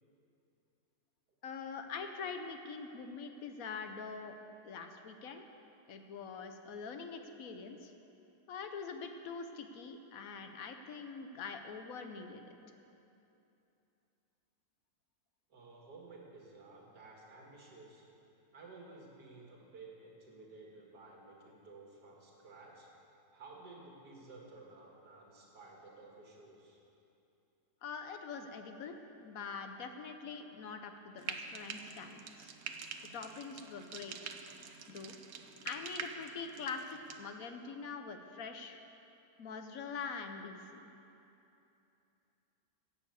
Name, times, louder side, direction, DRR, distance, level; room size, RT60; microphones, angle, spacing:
voice 1, 1.4-4.4 4.6-5.4 5.9-7.9 8.5-12.6 27.8-28.9 29.2-32.5 33.1-34.3 34.9-35.1 35.6-38.8 39.4-40.9, left 5 dB, 65° left, 6 dB, 1.1 m, -44 dB
voice 2, 15.5-18.0 18.5-22.9 23.3-26.8, right 3 dB, 85° right, -2 dB, 2.5 m, -54 dB
Frying (food), 31.2-37.2, right 6 dB, 55° right, 0.8 m, -46 dB
11.0 x 7.6 x 8.0 m, 2.8 s
omnidirectional pair, 1.7 m